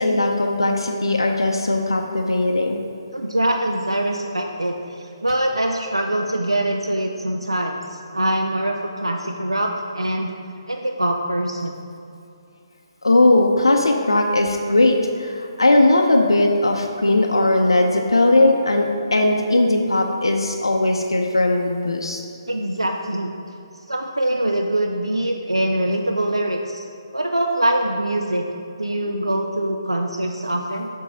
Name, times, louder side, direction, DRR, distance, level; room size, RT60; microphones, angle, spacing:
voice 1, 0.0-2.8 13.0-22.2, left 2 dB, 70° left, 2 dB, 0.6 m, -18 dB
voice 2, 3.1-10.3 10.7-11.8 22.5-23.3 23.9-26.8 27.1-28.4 28.8-30.9, right 1 dB, 80° right, 3 dB, 0.5 m, -23 dB
6.8 x 4.6 x 5.1 m, 2.6 s
figure-of-eight pair, 140°, 3 cm